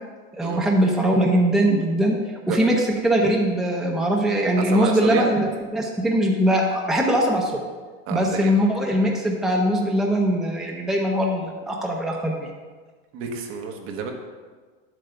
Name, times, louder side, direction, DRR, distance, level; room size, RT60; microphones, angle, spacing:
voice 1, 0.4-2.2 2.5-2.8 3.0-7.6 8.1-12.5, right 1 dB, ahead, -1 dB, 0.9 m, -21 dB
voice 2, 4.6-5.3 8.1-8.5 13.1-14.1, right 5 dB, 45° right, 3 dB, 1.2 m, -29 dB
9.1 x 8.0 x 3.4 m, 1.4 s
supercardioid pair, 125°, 30 cm